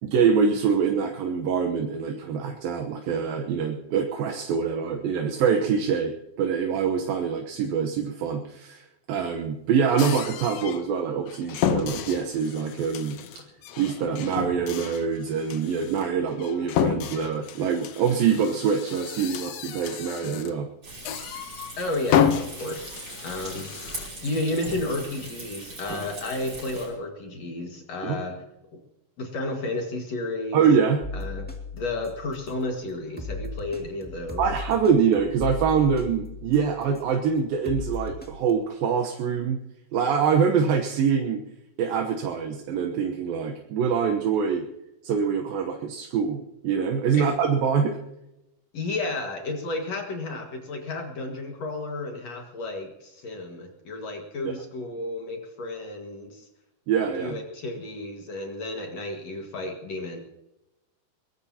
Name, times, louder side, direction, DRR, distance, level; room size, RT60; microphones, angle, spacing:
voice 1, 0.0-13.4 13.8-20.7 28.0-28.2 30.5-31.0 34.4-39.6 39.9-41.4 41.8-44.7 45.0-48.0 54.4-54.5 56.9-57.4, right 6 dB, 75° right, 3 dB, 2.8 m, -25 dB
sound 1, 10.0-10.9 11.3-20.6 21.0-21.8 22.0-24.1, left 9 dB, 80° left, 1.5 m, -30 dB
Frying (food), 20.8-26.9, right 2 dB, 25° right, 5.6 m, -40 dB
voice 2, 21.8-23.0 23.2-23.7 24.2-28.4 29.2-30.6 31.1-31.5 31.7-34.4 47.1-47.3 48.7-56.5 57.2-60.2, left 2 dB, 50° left, 2 dB, 2.6 m, -32 dB
sound 2, 31.0-32.7 33.2-37.1 37.7-38.5, left 3 dB, 10° left, 0.5 m, -37 dB
22.0 x 18.5 x 2.9 m, 0.91 s
omnidirectional pair, 4.3 m